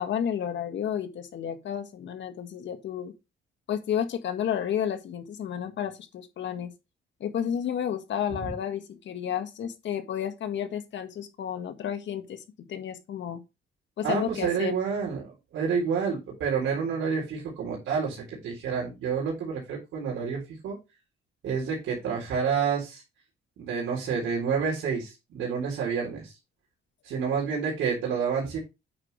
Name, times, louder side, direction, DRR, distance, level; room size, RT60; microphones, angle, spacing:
voice 1, 0.0-3.1 3.7-6.7 7.2-13.4 14.0-14.7, left 9 dB, 65° left, 1.8 m, -31 dB
voice 2, 14.0-20.8 21.4-23.0 23.6-26.3 27.0-28.6, right 6 dB, 80° right, 3.8 m, -29 dB
8.8 x 6.2 x 3.3 m
cardioid pair, 90°, 20 cm